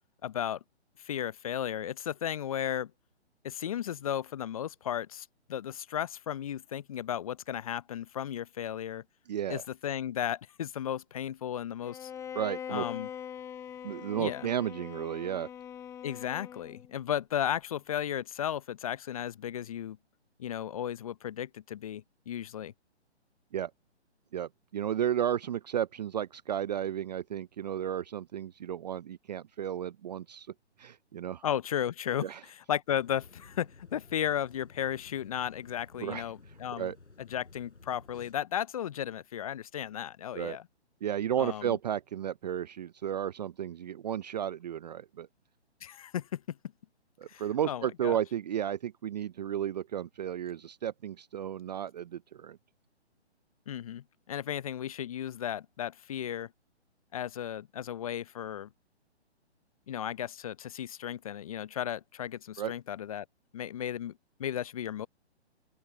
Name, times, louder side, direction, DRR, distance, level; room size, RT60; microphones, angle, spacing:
voice 1, 0.2-0.6 1.0-2.9 3.4-9.0 9.5-12.1 12.7-13.1 14.2-14.5 16.0-20.0 20.4-22.7 31.4-36.9 37.2-40.6 41.4-41.8 45.8-46.6 47.3-48.2 53.7-56.5 57.1-58.7 59.9-63.3 63.5-65.1, left 10 dB, 30° left, 0.6 m, -35 dB
voice 2, 9.3-9.6 12.3-12.8 13.8-15.5 23.5-23.7 24.3-30.5 30.8-31.4 32.2-32.4 36.0-36.2 36.8-37.0 40.3-40.6 41.0-45.3 47.2-52.6 62.6-62.7, right 10 dB, 40° right, 0.6 m, -33 dB
Bowed string instrument, 11.8-16.9, left 8 dB, 10° left, 1.0 m, -42 dB
sound 1, 32.9-38.3, left 3 dB, 90° left, 7.8 m, -55 dB
open air
figure-of-eight pair, 140°, 34 cm